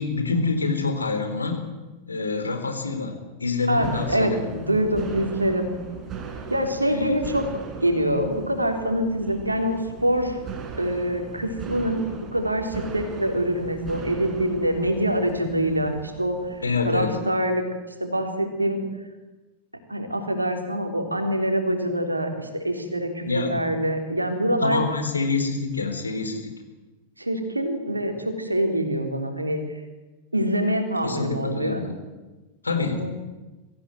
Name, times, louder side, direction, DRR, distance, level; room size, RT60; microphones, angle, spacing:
voice 1, 0.0-1.6 2.1-4.4 6.9-7.1 16.6-17.1 23.2-23.6 24.6-26.5 31.0-32.0 32.6-33.0, left 4 dB, 80° left, 6 dB, 4.2 m, -26 dB
voice 2, 3.7-5.7 6.5-7.5 7.8-10.4 10.8-16.6 16.8-17.6 18.0-18.8 19.9-24.8 27.2-29.6 30.3-31.8 32.8-33.1, right 1 dB, 85° right, 5 dB, 3.6 m, -25 dB
sound 1, 3.8-17.2, right 6 dB, 25° right, 4.6 m, -38 dB
23.5 x 15.5 x 9.4 m, 1.2 s
figure-of-eight pair, 90°, 0 cm